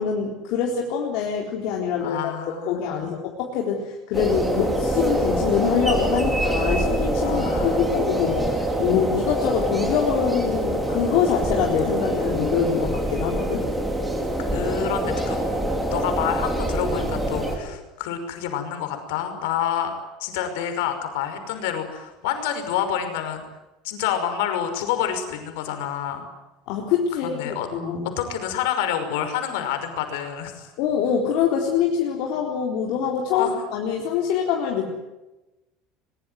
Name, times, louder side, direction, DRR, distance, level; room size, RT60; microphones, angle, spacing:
voice 1, 0.0-2.4 2.7-13.7 26.7-28.0 30.8-34.9, left 7 dB, 55° left, 0 dB, 4.1 m, -24 dB
voice 2, 2.0-3.1 7.2-8.0 14.4-15.4 15.9-19.9 20.2-23.4 23.8-26.2 27.2-27.7 28.2-30.7 33.3-33.5, left 9 dB, 85° left, 7 dB, 5.7 m, -28 dB
sound 1, 4.1-17.6, right 1 dB, 5° right, 4.1 m, -25 dB
22.5 x 22.5 x 9.5 m, 1.0 s
cardioid pair, 175°, 0 cm